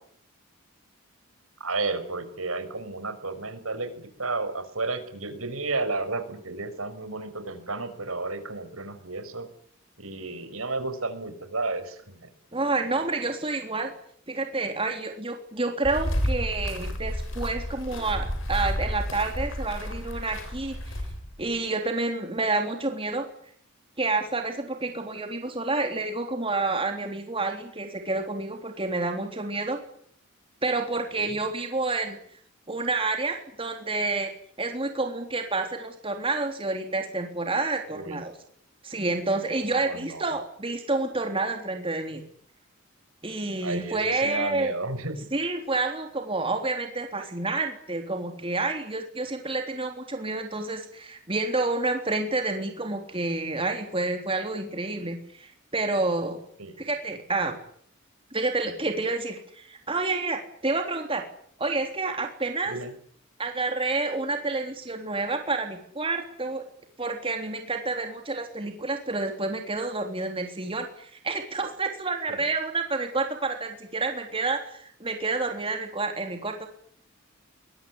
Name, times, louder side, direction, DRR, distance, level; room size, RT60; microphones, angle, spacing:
voice 1, 1.6-9.5 10.0-12.3 31.2-31.4 37.9-38.2 39.7-40.3 43.6-45.2 56.6-56.7 62.7-62.9 72.3-72.4, right 3 dB, 85° right, 9 dB, 5.9 m, -32 dB
voice 2, 12.5-13.9 14.3-20.8 21.4-23.3 24.0-29.8 30.6-32.2 32.7-34.3 34.6-38.3 38.8-42.2 43.2-44.7 45.3-56.4 56.8-57.6 58.3-61.2 61.6-62.8 63.4-66.6 67.0-76.7, right 3 dB, 25° right, 4 dB, 3.5 m, -29 dB
sound 1, 15.8-21.4, equal, 60° left, 6.9 m, -31 dB
24.0 x 22.0 x 9.7 m, 0.62 s
head